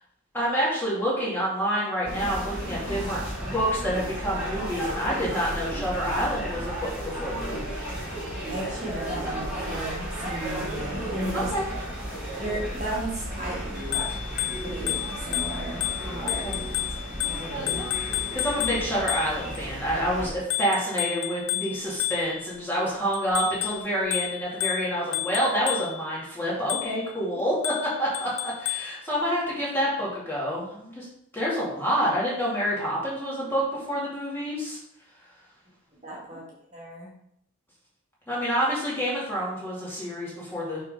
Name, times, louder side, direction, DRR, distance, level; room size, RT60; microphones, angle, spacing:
voice 1, 0.3-3.2 3.5-8.0 11.3-11.7 16.2-16.6 18.3-31.1 31.3-34.8 36.3-36.4 38.3-40.8, equal, 10° left, -7 dB, 2.5 m, -28 dB
sound 1, 2.0-20.3, right 1 dB, 5° right, 2.9 m, -33 dB
voice 2, 8.5-11.5 12.4-13.6 13.9-14.1 14.6-16.5 17.1-17.8 36.0-36.4 36.7-37.1, right 1 dB, 30° right, -5 dB, 1.9 m, -35 dB
Bicycle bell, 13.8-19.6 20.5-22.6 23.1-26.1 26.7-27.1 27.6-29.0, left 14 dB, 75° left, 0.4 m, -31 dB
6.5 x 3.7 x 5.7 m, 0.74 s
head